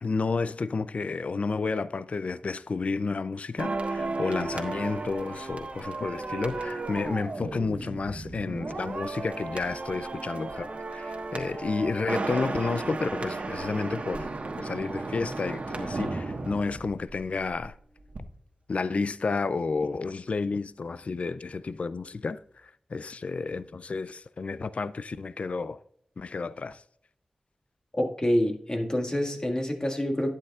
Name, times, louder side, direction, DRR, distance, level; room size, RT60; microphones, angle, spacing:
voice 1, 0.0-14.3 14.6-17.7 18.7-25.8 26.2-26.8, left 4 dB, 65° left, 0.3 m, -31 dB
sound 1, 3.6-17.7 18.0-18.2, right 3 dB, 70° right, 1.3 m, -34 dB
voice 2, 27.9-30.3, equal, 30° left, 1.8 m, -27 dB
11.5 x 9.1 x 2.4 m
cardioid pair, 40°, 2 cm